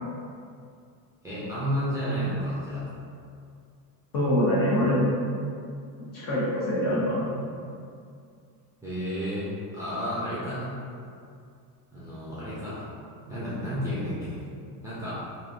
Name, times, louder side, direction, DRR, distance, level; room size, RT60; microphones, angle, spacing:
voice 1, 1.2-2.9 8.8-9.5 9.7-10.8 11.9-12.9 13.2-14.4 14.8-15.2, equal, 5° right, -11 dB, 0.5 m, -31 dB
voice 2, 4.1-5.1 6.0-7.3, left 1 dB, 40° left, -7 dB, 1.0 m, -24 dB
3.1 x 2.6 x 2.6 m, 2.4 s
supercardioid pair, 120°, 49 cm